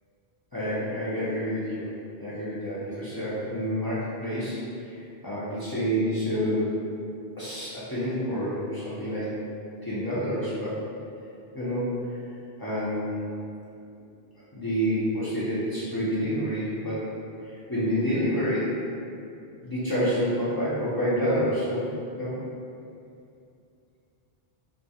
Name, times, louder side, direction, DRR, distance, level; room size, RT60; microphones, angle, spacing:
voice 1, 0.5-1.9 2.2-6.8 7.4-9.4 9.8-10.8 11.5-12.0 12.6-13.2 14.5-17.1 17.4-18.8 19.6-21.9 22.2-22.4, equal, 40° left, -11 dB, 0.3 m, -28 dB
2.3 x 2.0 x 2.7 m, 2.5 s
omnidirectional pair, 1.0 m